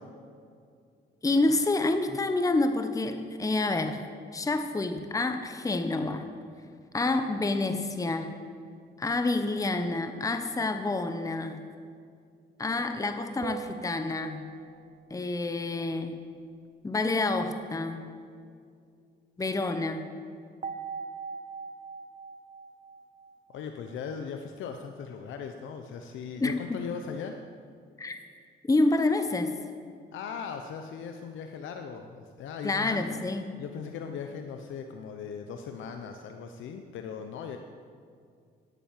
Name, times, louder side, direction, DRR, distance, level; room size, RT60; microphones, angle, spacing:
voice 1, 1.2-4.1 4.3-6.2 6.9-8.4 9.0-11.6 12.6-14.5 15.1-16.3 16.8-18.1 19.4-20.1 26.4-26.8 28.0-28.2 28.6-29.5 32.6-33.5, left 2 dB, 15° left, 8 dB, 0.9 m, -28 dB
sound 1, 13.4-15.0 20.6-24.0, right 5 dB, 35° right, 0.7 m, -41 dB
voice 2, 23.5-27.4 30.1-33.0 33.6-37.6, left 6 dB, 75° left, 5 dB, 0.8 m, -39 dB
10.0 x 9.3 x 7.6 m, 2.3 s
cardioid pair, 90°, 20 cm